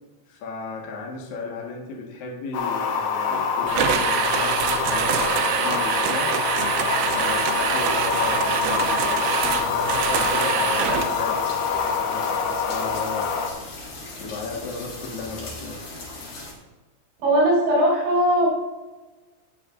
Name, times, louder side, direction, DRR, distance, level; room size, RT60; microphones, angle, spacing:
voice 1, 0.3-6.3 7.1-13.3 14.2-15.9, left 4 dB, 60° left, -1 dB, 1.9 m, -35 dB
sound 1, 2.5-13.5, left 6 dB, 85° left, 3.9 m, -25 dB
sound 2, 3.7-11.2, right 9 dB, 85° right, 2.6 m, -25 dB
sound 3, 6.9-16.5, left 2 dB, 45° left, 3.6 m, -39 dB
voice 2, 17.2-18.5, right 1 dB, 55° right, -6 dB, 5.8 m, -19 dB
18.0 x 7.8 x 2.6 m, 1.3 s
omnidirectional pair, 5.9 m